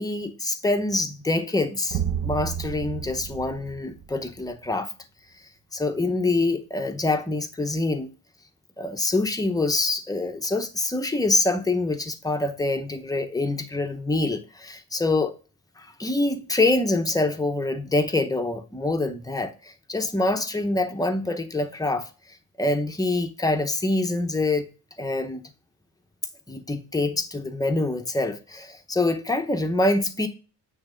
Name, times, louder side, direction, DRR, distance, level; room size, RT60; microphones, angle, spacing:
voice 1, 0.0-4.9 5.7-8.1 8.8-15.3 15.8-22.1 22.6-24.7 25.0-25.4 26.5-30.3, left 2 dB, 10° left, 0.8 m, -25 dB
sound 1, 1.9-4.5, right 8 dB, 50° right, 0.7 m, -31 dB
8.7 x 3.4 x 5.0 m
cardioid pair, 140°, 36 cm